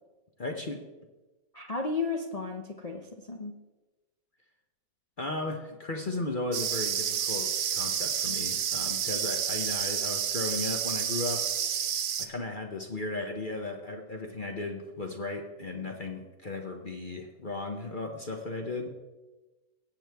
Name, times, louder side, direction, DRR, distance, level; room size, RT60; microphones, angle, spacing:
voice 1, 0.4-0.8 5.2-11.5 12.2-18.9, left 2 dB, 40° left, 3 dB, 0.7 m, -35 dB
voice 2, 1.5-3.5, left 4 dB, 80° left, 2 dB, 0.3 m, -34 dB
sound 1, 6.5-12.3, right 9 dB, 70° right, 1.4 m, -30 dB
18.0 x 7.7 x 3.5 m, 1.2 s
omnidirectional pair, 2.0 m